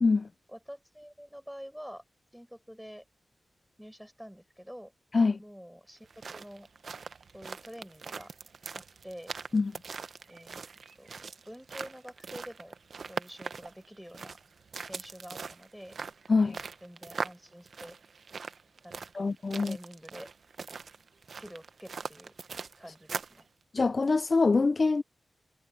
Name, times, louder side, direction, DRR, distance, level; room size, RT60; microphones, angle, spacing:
voice 1, 0.5-2.0 2.3-3.0 3.8-4.9 5.4-6.7 7.3-8.3 8.7-9.3 10.3-10.7 11.0-12.8 13.1-14.4 14.8-16.0 16.8-18.0 18.8-19.3 19.6-20.3 21.4-22.3 22.8-23.5, equal, ahead, 5.6 m, -47 dB
sound 1, 6.0-23.4, right 5 dB, 65° right, 0.9 m, -42 dB
voice 2, 19.1-19.8 23.7-25.0, left 4 dB, 40° left, 0.4 m, -24 dB
wide cardioid pair, 100°, 0 cm